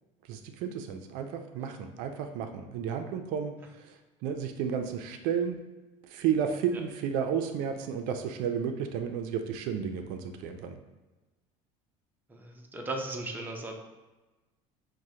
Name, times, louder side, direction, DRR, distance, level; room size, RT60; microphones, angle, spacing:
voice 1, 0.3-5.6 6.0-10.8, right 7 dB, 70° right, 6 dB, 0.4 m, -32 dB
voice 2, 12.3-13.8, right 2 dB, 10° right, 1 dB, 0.5 m, -37 dB
6.0 x 2.1 x 2.7 m, 1.2 s
cardioid pair, 125°, 15 cm